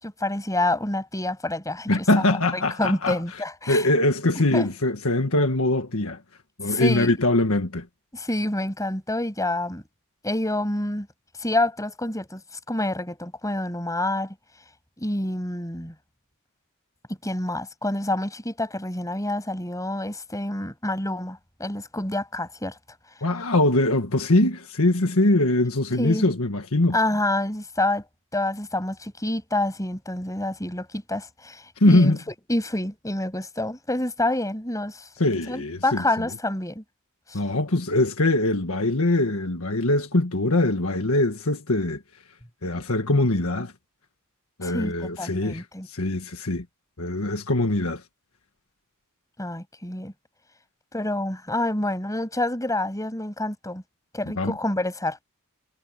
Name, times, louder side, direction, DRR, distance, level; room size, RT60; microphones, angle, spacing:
voice 1, 0.0-2.2 2.5-3.9 4.5-4.7 6.7-7.1 8.1-9.8 10.2-11.1 11.4-12.4 12.7-14.3 15.0-15.9 17.1-22.8 26.0-26.3 26.9-28.0 28.3-32.2 32.5-35.1 35.5-36.8 37.3-37.4 44.6-45.9 49.4-50.1 50.9-53.8 54.1-55.2, left 1 dB, 15° left, 8.0 m, -27 dB
voice 2, 1.9-3.2 3.7-6.2 6.6-7.9 23.2-27.0 31.8-32.2 35.2-36.3 37.3-42.0 42.6-43.7 44.6-46.6 47.0-48.0 54.4-54.5, left 2 dB, 70° left, 1.7 m, -22 dB
head